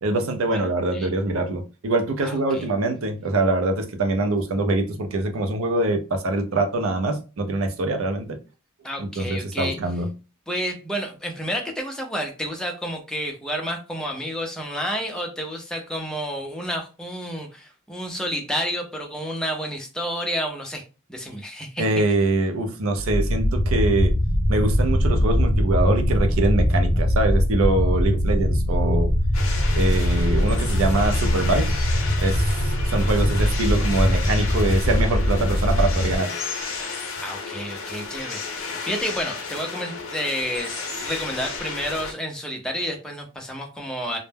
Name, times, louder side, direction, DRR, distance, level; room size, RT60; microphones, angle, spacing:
voice 1, 0.0-8.4 9.0-10.1 21.8-24.2 24.5-29.1 29.8-31.7 32.2-36.3, right 2 dB, 80° right, 0.5 m, -24 dB
voice 2, 2.2-2.7 8.8-9.8 10.5-20.8 21.1-22.0 37.2-44.2, equal, 5° left, 0.5 m, -30 dB
sound 1, 23.0-36.2, equal, 45° left, 0.6 m, -21 dB
sound 2, 29.3-42.1, left 4 dB, 85° left, 0.7 m, -33 dB
2.1 x 2.1 x 3.2 m
head